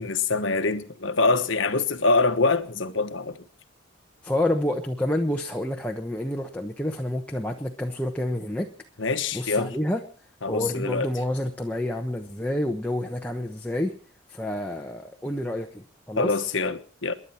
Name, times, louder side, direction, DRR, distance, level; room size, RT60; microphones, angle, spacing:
voice 1, 0.0-3.4 9.0-9.8 10.4-11.1 16.2-17.1, left 3 dB, 65° left, 1.3 m, -24 dB
voice 2, 4.2-8.7 9.3-10.0 10.5-13.9 14.3-16.4, left 1 dB, 5° left, 1.1 m, -28 dB
28.5 x 11.0 x 4.4 m
head